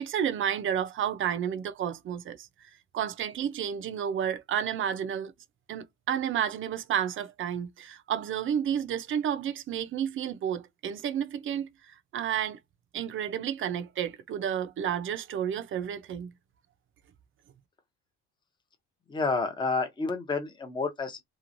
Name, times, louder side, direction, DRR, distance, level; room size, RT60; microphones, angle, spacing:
voice 1, 0.0-2.5 2.9-5.3 5.7-12.6 12.9-16.3, right 9 dB, 45° right, 0.6 m, -31 dB
voice 2, 19.1-21.2, left 4 dB, 15° left, 0.7 m, -30 dB
3.0 x 2.4 x 2.6 m
cardioid pair, 130°, 30 cm